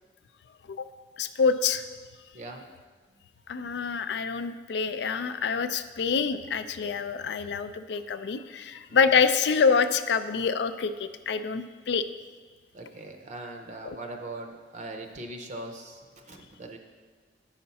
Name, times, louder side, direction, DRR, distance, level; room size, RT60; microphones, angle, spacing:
voice 1, 1.2-1.8 3.5-12.0 13.9-14.0, left 5 dB, 70° left, 11 dB, 0.4 m, -26 dB
voice 2, 2.3-2.6 12.7-16.8, right 2 dB, 45° right, 4 dB, 0.6 m, -40 dB
8.5 x 5.8 x 4.1 m, 1.4 s
head